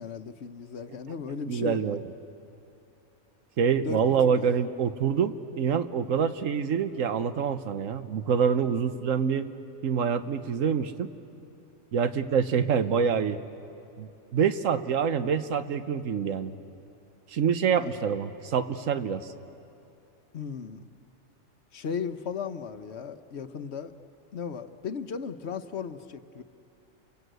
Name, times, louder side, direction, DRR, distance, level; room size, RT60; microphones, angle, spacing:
voice 1, 0.0-1.9 3.8-4.5 17.8-17.9 20.3-20.9 21.7-23.9 24.3-26.4, left 6 dB, 60° left, 9 dB, 1.1 m, -36 dB
voice 2, 1.5-2.0 3.6-9.5 9.8-11.1 11.9-13.4 14.0-16.5 17.3-19.3, right 7 dB, 80° right, 10 dB, 1.3 m, -26 dB
29.5 x 24.5 x 8.0 m, 2.7 s
omnidirectional pair, 1.3 m